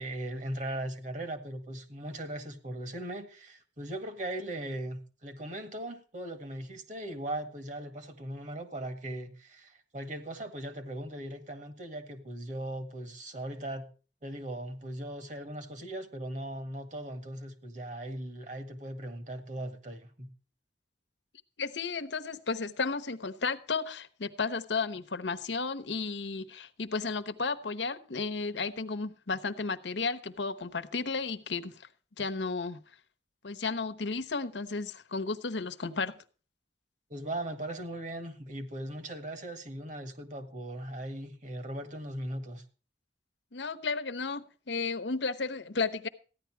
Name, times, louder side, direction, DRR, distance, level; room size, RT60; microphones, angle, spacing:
voice 1, 0.0-13.9 14.2-20.3 37.1-42.6, right 1 dB, 45° right, 1.8 m, -39 dB
voice 2, 21.6-31.8 32.2-32.8 33.4-36.1 43.5-46.1, left 4 dB, 85° left, 1.0 m, -33 dB
14.5 x 10.5 x 4.7 m
head